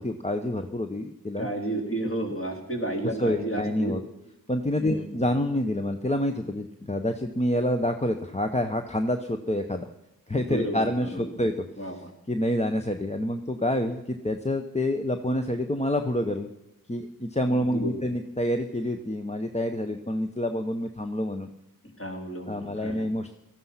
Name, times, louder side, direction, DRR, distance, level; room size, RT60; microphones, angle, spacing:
voice 1, 0.0-1.5 3.2-4.0 4.5-9.9 10.3-11.6 12.3-16.5 16.9-21.5 22.5-23.4, left 1 dB, 20° left, 6 dB, 0.9 m, -27 dB
voice 2, 1.4-4.0 4.8-5.2 10.5-11.2 11.8-12.1 17.5-18.0 22.0-23.1, right 1 dB, 40° left, 0 dB, 3.9 m, -32 dB
17.5 x 14.0 x 5.7 m, 0.87 s
cardioid pair, 65°, 35 cm